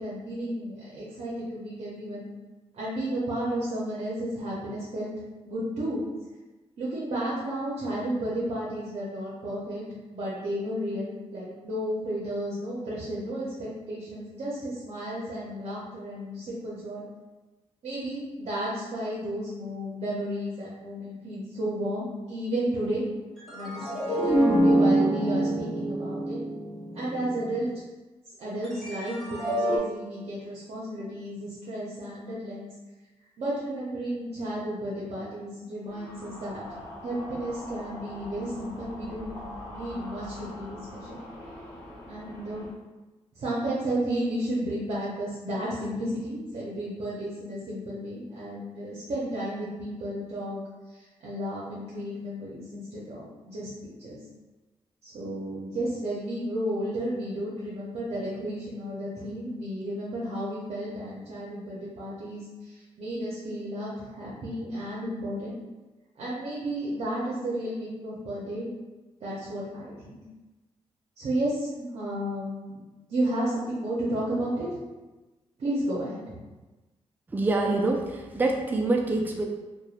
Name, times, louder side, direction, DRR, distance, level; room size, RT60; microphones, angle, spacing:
voice 1, 0.0-2.3 2.7-5.1 5.5-6.0 6.8-9.8 10.1-17.0 17.8-23.0 23.5-26.4 26.9-27.7 28.4-32.7 33.4-41.2 42.1-42.7 43.3-50.6 50.9-53.7 54.0-54.2 55.0-65.5 66.2-68.7 69.2-70.2 71.2-72.8 73.1-74.7 75.6-76.4, right 1 dB, 65° right, -7 dB, 0.6 m, -33 dB
sound 1, 23.4-27.7 28.6-29.8, right 1 dB, 5° left, 0.8 m, -26 dB
sound 2, 35.8-42.7, left 1 dB, 25° left, 1.2 m, -43 dB
voice 2, 77.3-79.5, right 2 dB, 15° right, 1 dB, 0.3 m, -25 dB
2.9 x 2.2 x 2.4 m, 1.1 s
cardioid pair, 105°, 12 cm